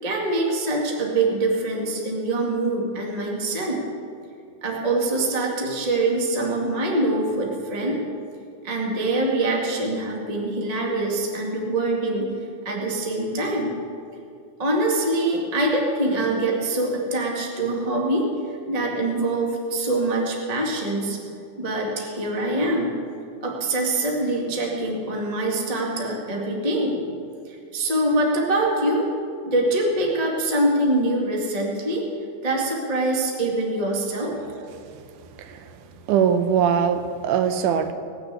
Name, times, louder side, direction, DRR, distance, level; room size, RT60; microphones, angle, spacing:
voice 1, 0.0-3.8 4.6-8.0 8.6-12.3 12.6-13.7 14.6-18.3 18.7-21.2 21.6-23.0 23.4-27.0 27.5-29.1 29.4-32.1 32.4-34.3, right 2 dB, 20° right, -2 dB, 0.9 m, -24 dB
voice 2, 36.1-37.9, right 8 dB, 75° right, 9 dB, 2.0 m, -21 dB
19.0 x 6.9 x 8.1 m, 2.4 s
omnidirectional pair, 4.3 m